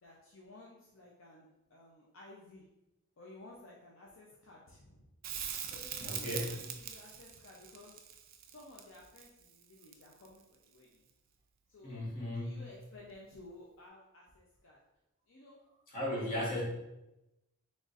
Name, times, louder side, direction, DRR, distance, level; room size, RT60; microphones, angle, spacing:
voice 1, 0.0-2.6 3.2-5.1 5.7-8.0 8.5-11.0 11.7-12.0 12.4-14.8 15.3-15.6 16.1-16.6, left 2 dB, 65° left, -3 dB, 0.6 m, -55 dB
Crackle, 5.2-10.4 13.1-13.2, right 8 dB, 45° right, 0.4 m, -42 dB
voice 2, 6.0-6.5 11.8-12.6 15.9-16.6, left 1 dB, 40° left, -5 dB, 1.3 m, -36 dB
4.0 x 3.6 x 2.5 m, 0.93 s
head